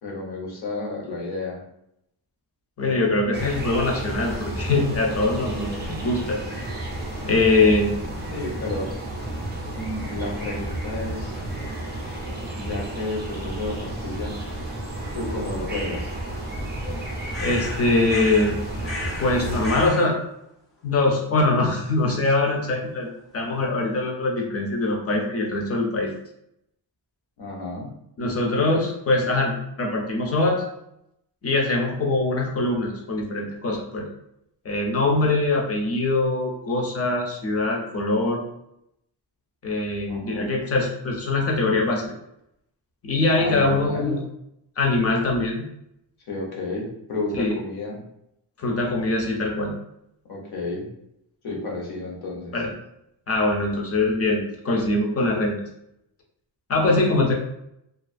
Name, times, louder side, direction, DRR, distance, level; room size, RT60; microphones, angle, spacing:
voice 1, 0.0-1.6 8.3-8.9 9.7-11.4 12.5-14.4 15.1-16.1 27.4-27.9 40.1-40.5 43.4-44.2 46.3-48.0 50.3-50.9 51.4-52.6, left 2 dB, 60° left, -2 dB, 0.8 m, -31 dB
voice 2, 2.8-5.7 6.0-6.7 7.2-7.9 17.4-18.6 19.2-20.2 20.8-23.1 23.3-26.1 28.2-30.6 31.4-34.1 34.6-38.4 39.6-42.1 43.0-44.2 44.8-45.6 47.3-47.6 48.6-49.7 52.5-52.7 53.3-55.6 56.7-57.3, left 2 dB, 35° left, 0 dB, 0.5 m, -23 dB
sound 1, 3.3-19.9, right 1 dB, 25° right, 0.4 m, -32 dB
sound 2, 17.3-18.5 18.8-19.3 19.6-20.1, left 2 dB, 85° left, 0.9 m, -33 dB
2.4 x 2.3 x 2.4 m, 0.78 s
wide cardioid pair, 180°, 44 cm